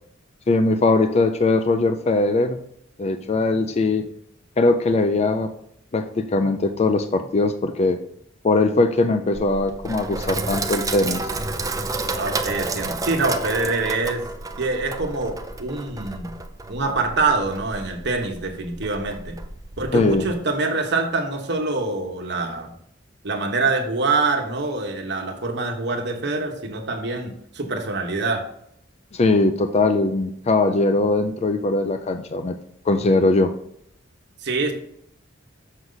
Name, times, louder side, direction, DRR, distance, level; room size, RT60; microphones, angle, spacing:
voice 1, 0.5-2.6 3.0-4.1 4.6-5.5 5.9-8.0 8.4-11.3 19.9-20.3 29.1-32.6 32.9-33.5, left 2 dB, 35° left, 8 dB, 0.4 m, -20 dB
Sink (filling or washing), 9.3-20.3, right 3 dB, 20° right, 0.5 m, -31 dB
voice 2, 12.1-14.2 14.6-16.4 16.7-19.4 19.8-22.7 23.2-28.4 34.4-34.7, right 3 dB, 60° right, 3 dB, 1.2 m, -25 dB
6.4 x 6.3 x 3.9 m, 0.70 s
head